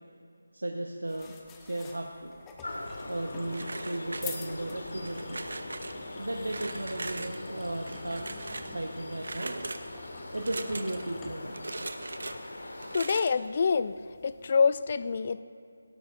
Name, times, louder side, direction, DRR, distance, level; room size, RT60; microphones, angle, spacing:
voice 1, 0.5-1.4 1.6-2.3 3.1-5.5 6.2-9.7 10.3-11.6, right 1 dB, 80° right, 2 dB, 1.2 m, -36 dB
sound 1, 1.0-14.5, left 6 dB, 10° left, 0.8 m, -50 dB
sound 2, 2.6-13.0, left 1 dB, 65° left, 2.0 m, -41 dB
sound 3, 3.5-4.6 5.0-5.9 6.5-7.4 7.8-8.7 9.2-9.8 10.4-11.1 11.5-12.4 12.8-13.4, right 2 dB, 60° right, 0.9 m, -39 dB
voice 2, 12.9-13.9 14.2-15.4, left 5 dB, 40° left, 14 dB, 0.5 m, -26 dB
18.0 x 16.5 x 2.6 m, 2.5 s
figure-of-eight pair, 160°, 0 cm